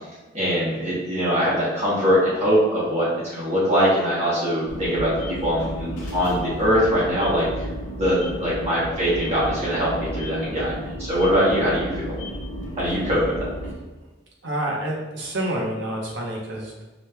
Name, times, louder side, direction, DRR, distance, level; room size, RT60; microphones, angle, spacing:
voice 1, 0.3-7.7 7.9-12.1 12.8-13.5, equal, 30° right, -9 dB, 0.9 m, -22 dB
sound 1, 4.7-13.7, equal, 60° left, 0.8 m, -33 dB
voice 2, 14.4-16.8, right 1 dB, 65° right, -2 dB, 0.9 m, -28 dB
5.0 x 3.0 x 2.2 m, 1.1 s
head